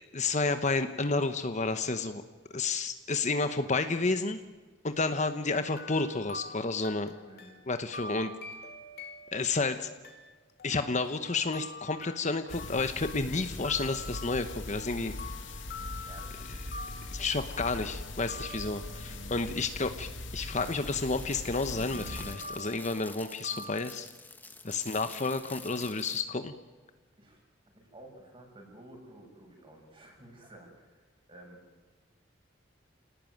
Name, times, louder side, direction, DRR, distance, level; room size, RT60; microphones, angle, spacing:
voice 1, 0.0-2.2 2.5-4.4 4.8-7.1 7.7-8.3 9.3-9.9 10.6-15.1 17.1-24.1 24.6-26.5, left 3 dB, 40° left, 9 dB, 1.0 m, -31 dB
sound 1, 5.6-19.4 21.9-23.8, left 3 dB, 55° left, 2.3 m, -46 dB
voice 2, 7.1-7.5 16.0-16.6 18.9-19.2 24.7-25.0 27.2-31.6, right 1 dB, 25° right, 1 dB, 6.5 m, -53 dB
sound 2, 12.5-22.4, left 2 dB, 70° left, 3.3 m, -41 dB
sound 3, 20.6-26.2, left 3 dB, 10° left, 1.4 m, -48 dB
28.0 x 18.5 x 9.3 m, 1.4 s
head